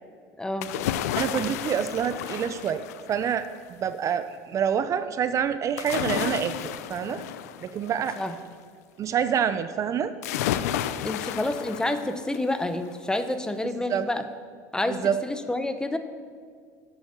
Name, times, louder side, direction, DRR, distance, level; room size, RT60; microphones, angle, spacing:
voice 1, 0.4-0.7 8.2-8.4 11.0-14.2 14.7-16.0, left 1 dB, 10° left, 9 dB, 0.9 m, -28 dB
sound 1, 0.6-3.4 5.8-8.4 10.2-12.5 12.9-13.0, left 11 dB, 90° left, 0.5 m, -32 dB
voice 2, 1.1-2.8 3.1-6.5 6.9-7.2 7.6-8.2 9.0-10.1 13.9-14.0 14.9-15.1, right 8 dB, 40° right, 11 dB, 0.6 m, -27 dB
11.0 x 8.1 x 7.3 m, 2.1 s
supercardioid pair, 105°, 8 cm